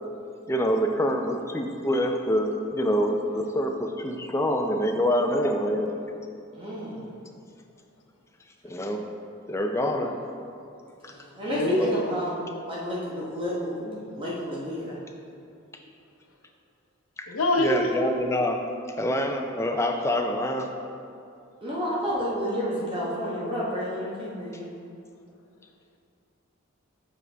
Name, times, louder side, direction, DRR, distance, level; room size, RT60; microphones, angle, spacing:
voice 1, 0.5-5.9 8.6-9.0 9.5-10.2 11.0-11.1 11.8-12.0 17.2-17.3 17.6-18.6 19.0-20.7, equal, 15° left, 3 dB, 0.4 m, -26 dB
voice 2, 6.5-7.1 11.1-14.9 21.6-24.7, equal, 25° right, -6 dB, 1.0 m, -31 dB
voice 3, 11.5-12.1 17.3-18.0, left 1 dB, 85° left, 3 dB, 0.7 m, -24 dB
7.4 x 5.3 x 3.4 m, 2.5 s
head